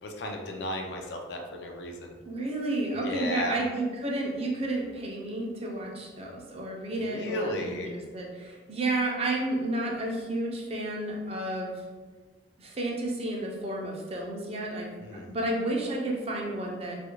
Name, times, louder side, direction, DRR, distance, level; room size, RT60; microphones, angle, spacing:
voice 1, 0.0-2.2 2.9-3.6 7.0-7.9 15.0-15.3, left 1 dB, 65° left, 2 dB, 0.4 m, -34 dB
voice 2, 2.2-11.7 12.6-14.9 15.3-17.0, right 2 dB, 35° right, -2 dB, 0.4 m, -31 dB
2.4 x 2.1 x 2.9 m, 1.4 s
head